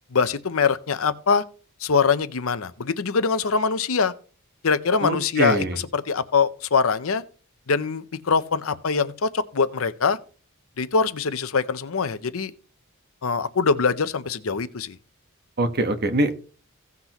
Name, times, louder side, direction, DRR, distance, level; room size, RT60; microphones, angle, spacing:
voice 1, 0.1-1.4 1.8-4.1 4.6-7.2 7.7-10.2 10.8-12.5 13.2-15.0, left 5 dB, 70° left, 0.7 m, -23 dB
voice 2, 5.0-5.8 15.6-16.3, right 1 dB, 50° right, 1.2 m, -23 dB
16.5 x 6.0 x 3.0 m
head